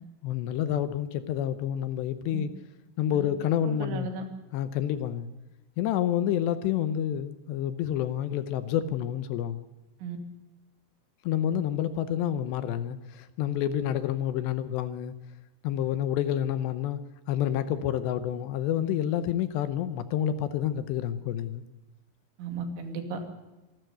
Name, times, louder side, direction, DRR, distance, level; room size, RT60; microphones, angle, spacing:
voice 1, 0.2-2.5 3.0-4.1 4.5-5.3 5.8-9.6 11.2-15.1 15.6-17.0 17.3-21.6, left 10 dB, 75° left, 2.9 m, -28 dB
voice 2, 3.6-4.3 10.0-10.2 22.4-23.3, right 4 dB, 75° right, 4.7 m, -35 dB
26.0 x 12.5 x 8.0 m
omnidirectional pair, 5.4 m